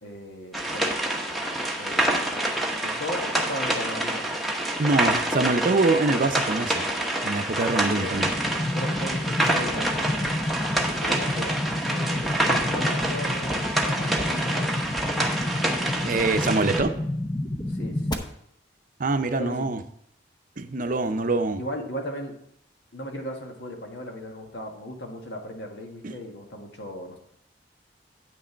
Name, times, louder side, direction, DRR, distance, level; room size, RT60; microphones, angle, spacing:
voice 1, 0.0-0.9 1.8-2.4 2.8-4.3 7.9-8.1 8.7-10.5 11.0-11.5 11.8-14.8 17.7-18.2 19.4-19.7 21.6-22.3 22.9-27.2, left 1 dB, 70° left, 2 dB, 1.7 m, -37 dB
sound 1, 0.5-16.8, right 1 dB, ahead, 1.0 m, -27 dB
voice 2, 4.8-6.8 7.2-8.3 16.0-16.9 19.0-19.8 20.6-21.6 26.0-26.1, right 3 dB, 45° right, 9 dB, 0.7 m, -24 dB
sound 2, 8.1-18.1, left 1 dB, 25° left, 0.8 m, -30 dB
9.2 x 6.4 x 4.5 m, 0.70 s
head